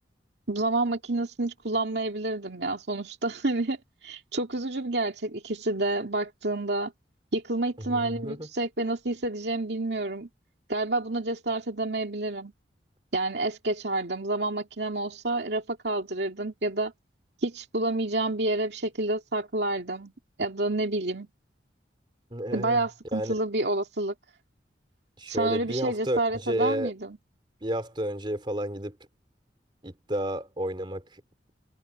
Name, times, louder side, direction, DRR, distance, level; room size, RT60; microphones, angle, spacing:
voice 1, 0.5-6.9 7.3-10.3 10.7-12.5 13.1-16.9 17.4-20.1 20.4-21.3 22.5-24.1 25.3-27.2, right 2 dB, 70° right, 2.2 m, -29 dB
voice 2, 7.8-8.5 22.3-22.8 23.1-23.3 25.2-26.9 27.6-29.0 29.8-31.2, equal, 25° right, 3.3 m, -31 dB
head